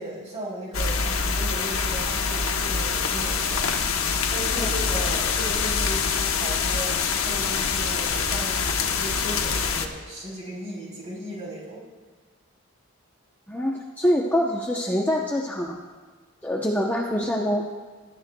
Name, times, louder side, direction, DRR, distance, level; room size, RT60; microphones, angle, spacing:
voice 1, 0.0-3.7 4.3-11.8, right 1 dB, 30° right, -4 dB, 3.8 m, -36 dB
sound 1, 0.7-9.9, left 5 dB, 75° left, 1.0 m, -25 dB
voice 2, 13.5-15.8 16.4-17.7, equal, 10° left, -2 dB, 0.7 m, -25 dB
22.0 x 11.5 x 2.2 m, 1.4 s
head